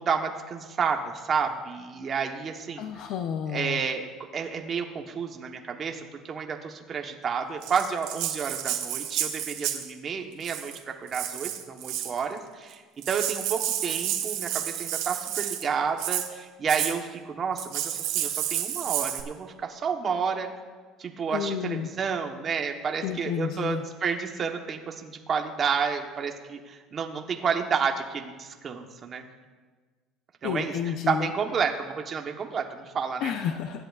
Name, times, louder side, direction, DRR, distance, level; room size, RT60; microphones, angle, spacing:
voice 1, 0.0-2.9 3.5-12.8 13.1-20.5 21.0-29.3 30.4-30.7 31.1-33.3, right 6 dB, 30° right, 3 dB, 1.1 m, -30 dB
voice 2, 2.8-3.8 21.3-21.9 23.0-23.8 30.4-31.3 33.2-33.8, left 8 dB, 55° left, 7 dB, 0.6 m, -31 dB
Rattle (instrument), 7.6-9.9 10.4-10.8 11.1-12.2 12.7-12.8 13.0-15.6 16.0-16.3 16.7-16.9 17.6-19.2, right 11 dB, 75° right, 1.4 m, -30 dB
24.5 x 10.5 x 2.4 m, 1.4 s
cardioid pair, 150°, 0 cm